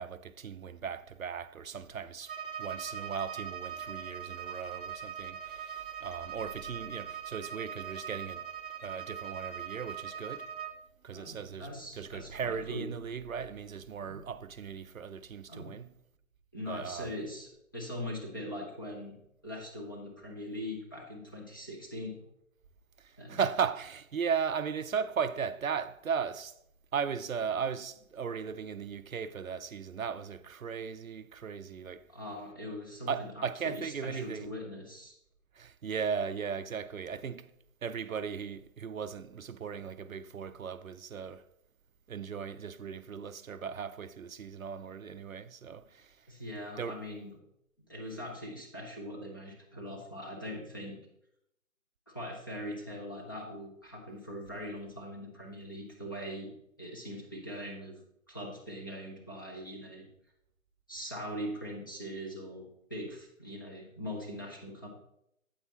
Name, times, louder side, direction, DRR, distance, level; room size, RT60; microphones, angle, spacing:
voice 1, 0.0-8.4 8.8-10.5 11.0-11.7 11.9-15.9 16.7-17.1 23.3-26.5 26.9-32.1 33.1-34.5 35.6-37.5 37.8-41.4 42.1-46.1 46.8-47.0, right 6 dB, 75° right, 0.6 m, -37 dB
Bowed string instrument, 2.2-10.8, right 7 dB, 40° right, 0.7 m, -41 dB
voice 2, 11.1-12.9 14.0-14.2 15.5-15.8 16.5-19.2 19.4-22.2 23.2-23.4 32.1-35.1 46.3-47.3 47.9-51.0 52.1-56.5 56.8-57.9 58.3-60.1 60.9-64.9, equal, 15° left, 0.6 m, -41 dB
8.7 x 8.3 x 2.9 m
figure-of-eight pair, 145°, 41 cm